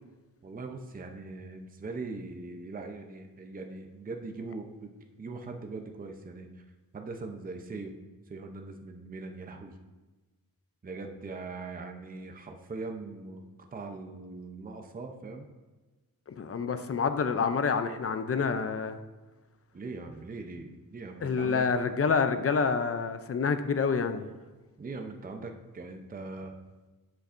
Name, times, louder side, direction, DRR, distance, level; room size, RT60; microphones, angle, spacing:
voice 1, 0.4-4.9 5.2-6.6 6.9-7.9 8.3-9.8 10.8-13.4 13.7-15.5 16.7-16.8 19.7-21.7 24.8-26.5, right 3 dB, 25° right, 4 dB, 0.6 m, -41 dB
voice 2, 16.3-19.0 21.2-24.3, left 5 dB, 40° left, 9 dB, 0.5 m, -28 dB
10.5 x 8.2 x 2.5 m, 1.2 s
wide cardioid pair, 180°, 37 cm